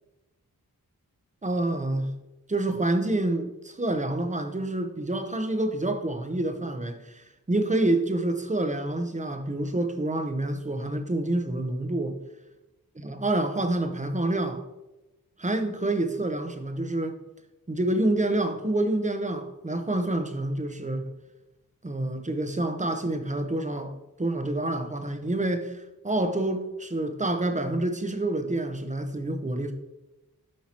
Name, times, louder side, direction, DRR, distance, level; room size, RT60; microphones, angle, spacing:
voice 1, 1.4-2.1 2.5-12.2 13.0-14.6 15.4-17.2 17.7-21.1 21.8-29.7, right 1 dB, 20° right, 0.8 m, -28 dB
7.5 x 5.6 x 3.0 m
cardioid pair, 55°, 35 cm